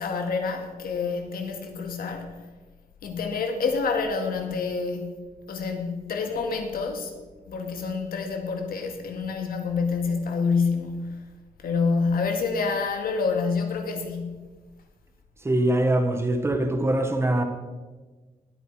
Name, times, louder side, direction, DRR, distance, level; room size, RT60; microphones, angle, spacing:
voice 1, 0.0-2.3 3.0-5.2 5.5-7.1 7.5-11.2 11.6-14.5, left 4 dB, 85° left, 4 dB, 2.2 m, -27 dB
voice 2, 15.4-17.4, right 1 dB, 20° right, 7 dB, 1.3 m, -23 dB
20.0 x 9.0 x 4.8 m, 1.3 s
wide cardioid pair, 160°, 15 cm